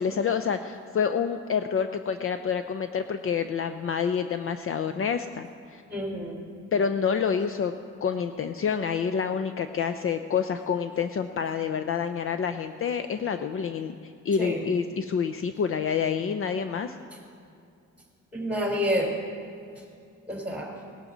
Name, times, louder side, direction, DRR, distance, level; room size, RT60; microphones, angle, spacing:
voice 1, 0.0-5.8 6.7-7.7 8.0-17.0, left 6 dB, 45° left, 9 dB, 0.6 m, -28 dB
voice 2, 5.9-6.4 14.4-14.7 18.3-19.1 20.3-20.8, equal, 5° right, -1 dB, 4.1 m, -29 dB
18.5 x 11.0 x 4.0 m, 2.5 s
cardioid pair, 90°, 30 cm